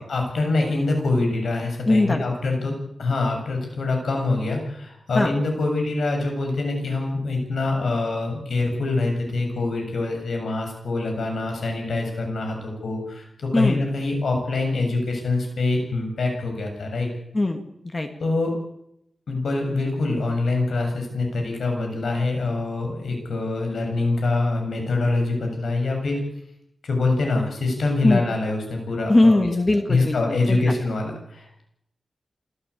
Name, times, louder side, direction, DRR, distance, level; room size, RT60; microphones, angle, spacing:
voice 1, 0.0-2.7 3.0-17.1 18.2-18.5 19.3-26.2 26.8-29.5 29.9-31.6, left 3 dB, 70° left, 2 dB, 7.5 m, -25 dB
voice 2, 1.9-2.4 5.1-5.3 13.5-13.8 17.3-17.6 17.9-18.1 28.0-28.2 29.1-30.7, left 2 dB, 20° left, 5 dB, 2.0 m, -20 dB
27.0 x 13.5 x 8.6 m, 0.78 s
wide cardioid pair, 160°, 0 cm